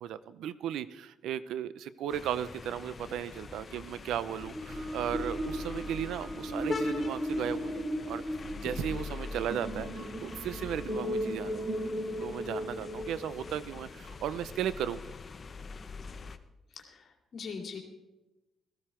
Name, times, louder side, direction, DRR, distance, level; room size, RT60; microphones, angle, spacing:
voice 1, 0.0-8.3 8.6-11.7 12.2-15.0, right 10 dB, 80° right, 15 dB, 0.6 m, -36 dB
sound 1, 2.1-16.4, left 4 dB, 40° left, 0.9 m, -43 dB
sound 2, 4.4-13.8, equal, 50° right, 5.6 m, -36 dB
voice 2, 16.8-17.8, left 5 dB, 55° left, 2 dB, 2.6 m, -42 dB
15.0 x 14.5 x 4.4 m, 1.0 s
cardioid pair, 90°, 0 cm